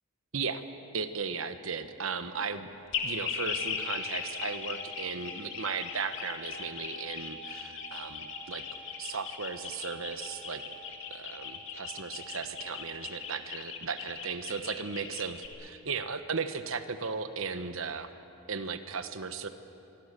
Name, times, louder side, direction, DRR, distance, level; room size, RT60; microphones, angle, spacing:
voice 1, 0.9-2.7 3.0-8.6 9.0-10.6 11.1-18.1 18.5-19.5, right 5 dB, 65° right, 10 dB, 1.2 m, -36 dB
sound 1, 2.9-15.5, left 6 dB, 60° left, 2.2 m, -38 dB
sound 2, 3.5-13.6, equal, 5° left, 1.7 m, -51 dB
25.0 x 23.0 x 6.8 m, 2.9 s
head